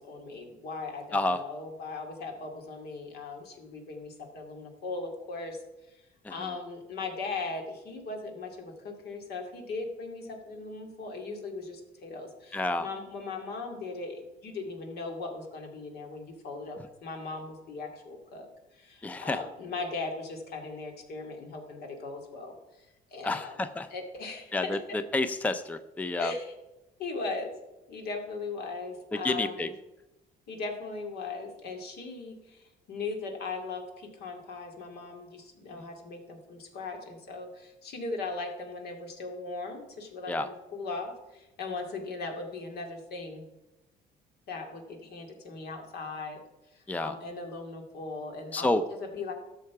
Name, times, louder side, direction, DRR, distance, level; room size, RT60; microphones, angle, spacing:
voice 1, 0.0-5.6 5.9-6.0 6.3-18.5 18.7-23.6 23.9-24.8 26.2-26.5 27.0-27.5 27.9-29.7 30.5-43.4 44.5-46.4 46.7-49.3, left 3 dB, 70° left, 3 dB, 2.3 m, -38 dB
voice 2, 12.5-12.9 19.0-19.4 23.2-23.9 24.5-24.8 25.1-26.3 29.2-29.7 40.3-40.5 46.9-47.1 48.5-48.8, left 2 dB, 10° left, 11 dB, 0.5 m, -29 dB
13.0 x 6.7 x 4.8 m, 1.0 s
cardioid pair, 110°, 17 cm